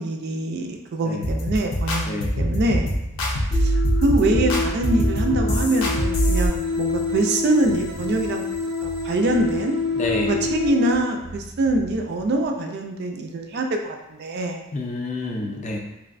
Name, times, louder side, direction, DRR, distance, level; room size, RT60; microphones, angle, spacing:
voice 1, 0.0-2.9 3.6-8.4 8.8-9.7 10.2-14.6, right 2 dB, 50° right, 3 dB, 0.3 m, -24 dB
sound 1, 1.2-6.5, equal, 90° left, 0.6 m, -23 dB
voice 2, 2.1-2.4 10.0-10.4 14.7-15.8, left 2 dB, 35° left, 1 dB, 0.4 m, -28 dB
sound 2, 2.8-12.4, right 1 dB, 85° right, 0.7 m, -39 dB
sound 3, 3.5-11.0, left 4 dB, 5° right, 0.6 m, -27 dB
3.1 x 2.6 x 2.5 m, 0.90 s
head